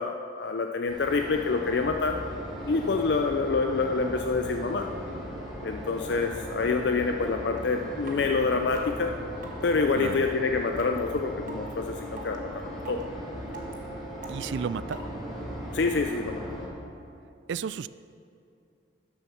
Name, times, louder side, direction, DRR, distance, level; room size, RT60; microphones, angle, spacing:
voice 1, 0.0-2.2 2.7-4.9 5.6-9.1 9.6-12.5 12.9-13.0 15.7-16.4, left 4 dB, 60° left, 5 dB, 0.5 m, -27 dB
sound 1, 0.9-16.7, equal, ahead, 3.1 m, -38 dB
sound 2, 7.6-7.7 8.1-8.2 8.7-8.8 9.4-9.6 10.1-10.2 10.8-11.0 11.5-11.6 12.2-12.4 12.8-13.0 13.5-13.7 14.2-14.5 14.9-15.0, right 3 dB, 45° right, 1.4 m, -42 dB
voice 2, 9.9-10.3 14.3-15.0 17.5-17.9, right 6 dB, 70° right, 16 dB, 0.3 m, -32 dB
13.0 x 7.8 x 5.7 m, 2.5 s
head